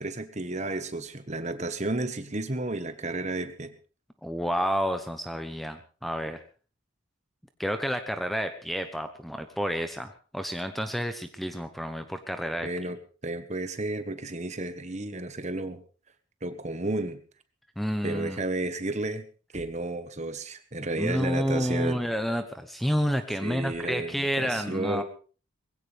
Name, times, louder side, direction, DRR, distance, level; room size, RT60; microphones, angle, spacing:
voice 1, 0.0-3.7 12.6-13.0 13.2-15.8 16.4-17.2 18.0-19.2 19.5-22.0 23.4-25.0, right 2 dB, 35° right, 10 dB, 1.2 m, -32 dB
voice 2, 4.2-6.4 7.6-12.7 17.8-18.4 20.8-25.0, equal, ahead, 8 dB, 0.8 m, -30 dB
20.5 x 16.5 x 3.4 m, 0.38 s
head